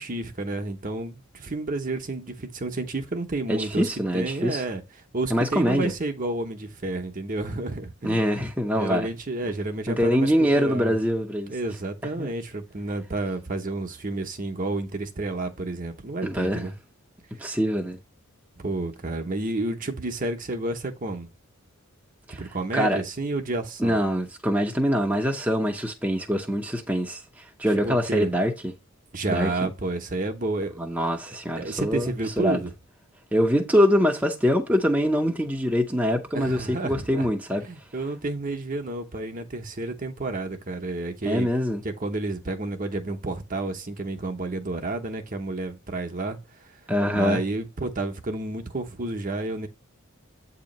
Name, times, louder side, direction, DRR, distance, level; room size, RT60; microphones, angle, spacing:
voice 1, 0.0-4.8 5.1-8.2 8.7-10.9 11.5-16.7 18.6-21.3 22.4-24.0 27.8-28.3 29.1-30.8 31.6-32.7 36.3-37.3 37.6-41.5 41.8-46.4 47.1-49.7, right 2 dB, 35° right, 0.8 m, -30 dB
voice 2, 3.5-4.6 5.3-5.9 8.0-9.1 9.9-11.5 12.2-12.3 16.2-16.7 17.4-18.0 22.3-22.4 22.7-23.0 23.8-28.7 29.3-29.7 30.8-32.1 32.4-32.6 33.3-37.6 41.2-41.8 46.9-47.4, equal, 5° right, 0.6 m, -24 dB
8.1 x 2.9 x 5.2 m
head